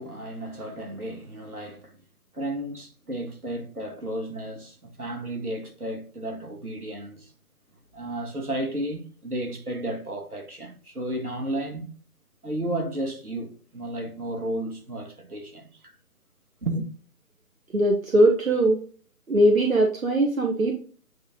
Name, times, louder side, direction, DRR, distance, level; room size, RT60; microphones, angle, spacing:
voice 1, 0.0-2.0 2.3-7.3 7.9-11.9 12.4-16.0 16.6-16.9, right 1 dB, 85° right, 1.9 m, -33 dB
voice 2, 17.7-18.8 19.3-20.8, right 1 dB, 70° right, 1.2 m, -20 dB
8.6 x 3.0 x 3.7 m
figure-of-eight pair, 150°, 43 cm